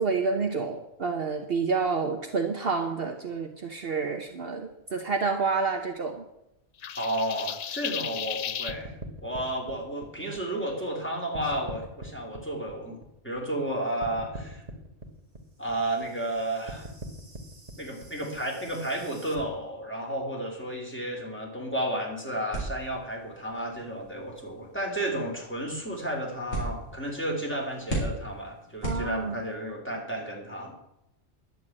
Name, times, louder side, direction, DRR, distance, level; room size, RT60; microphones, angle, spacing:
voice 1, 0.0-6.2 28.8-29.3, right 4 dB, 55° right, 4 dB, 1.2 m, -29 dB
sound 1, 6.8-8.8, left 8 dB, 70° left, 0.3 m, -34 dB
voice 2, 6.9-8.9 9.2-14.6 15.6-16.9 17.8-30.7, right 1 dB, 10° left, -1 dB, 3.3 m, -32 dB
sound 2, 8.7-11.0 11.3-13.7 14.0-19.4, right 1 dB, 30° right, 1.8 m, -43 dB
sound 3, 22.5-29.6, right 1 dB, 90° left, 4.6 m, -38 dB
11.0 x 7.3 x 8.6 m, 0.87 s
omnidirectional pair, 1.3 m